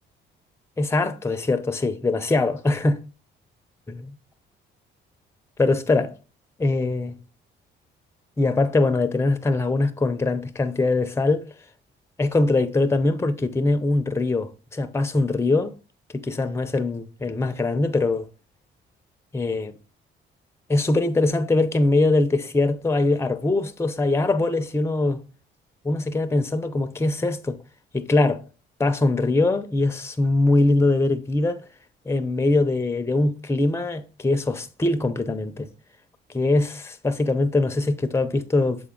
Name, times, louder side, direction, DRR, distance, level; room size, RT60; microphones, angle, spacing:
voice 1, 0.8-3.0 3.9-4.1 5.6-6.1 6.6-7.2 8.4-11.4 12.2-15.7 16.1-18.3 19.3-19.8 20.7-25.2 25.8-27.6 27.9-28.4 28.8-31.6 32.1-35.7 36.3-38.9, left 2 dB, 15° left, 0.6 m, -22 dB
6.9 x 4.0 x 3.7 m
cardioid pair, 90°, 20 cm